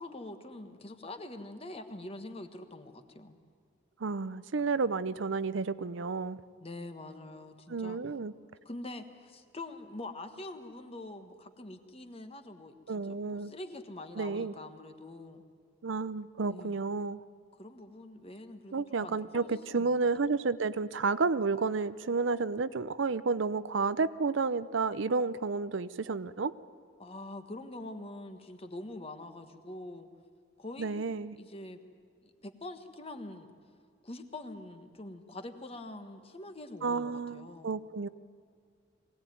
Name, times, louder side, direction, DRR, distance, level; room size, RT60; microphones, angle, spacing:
voice 1, 0.0-3.3 6.6-8.0 8.6-15.4 16.5-16.8 17.6-20.1 27.0-30.1 30.6-31.0 31.4-31.8 32.2-33.5 34.0-37.8, left 2 dB, 30° left, 7 dB, 1.4 m, -45 dB
voice 2, 4.0-6.4 7.7-8.3 12.9-13.5 14.2-14.5 15.8-17.2 18.7-26.5 30.8-31.4 36.8-38.1, right 4 dB, 70° right, 15 dB, 0.6 m, -31 dB
22.5 x 17.5 x 9.3 m, 2.2 s
head